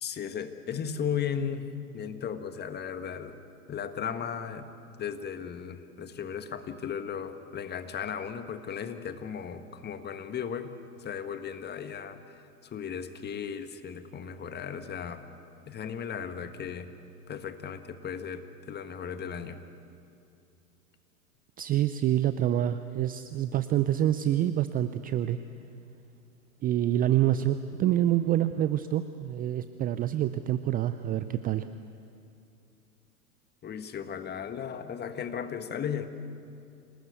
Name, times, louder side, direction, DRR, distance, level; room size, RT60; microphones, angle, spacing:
voice 1, 0.0-1.7 1.9-3.4 3.7-4.7 5.0-10.7 11.0-15.2 15.7-16.9 17.3-19.6 33.6-36.1, left 7 dB, 20° left, 9 dB, 1.6 m, -36 dB
voice 2, 21.6-25.4 26.6-31.7, right 12 dB, 20° right, 12 dB, 0.5 m, -27 dB
27.0 x 19.0 x 8.2 m, 2.6 s
hypercardioid pair, 100°, 45 cm